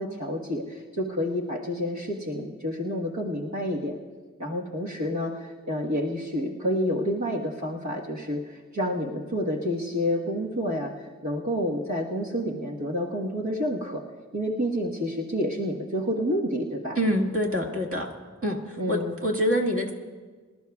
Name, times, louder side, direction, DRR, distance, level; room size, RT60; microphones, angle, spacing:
voice 1, 0.0-4.0 4.4-10.9 11.2-14.0 14.3-17.0 18.8-19.2, equal, 75° right, -3 dB, 1.4 m, -29 dB
voice 2, 17.0-18.1 18.4-19.9, equal, 50° right, -1 dB, 1.9 m, -26 dB
25.0 x 13.0 x 2.4 m, 1.4 s
wide cardioid pair, 40°, 29 cm